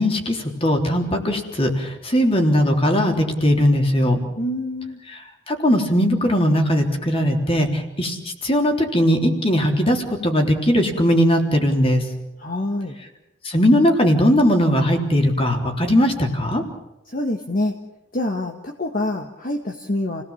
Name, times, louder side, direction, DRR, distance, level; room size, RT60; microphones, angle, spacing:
voice 1, 0.0-4.2 5.5-8.2 8.4-12.0 13.4-16.6, equal, 30° left, 3 dB, 3.6 m, -19 dB
voice 2, 4.4-5.0 12.4-12.9 17.1-17.7 18.1-20.2, left 1 dB, 45° left, 2 dB, 1.8 m, -26 dB
29.5 x 18.0 x 7.3 m, 0.97 s
head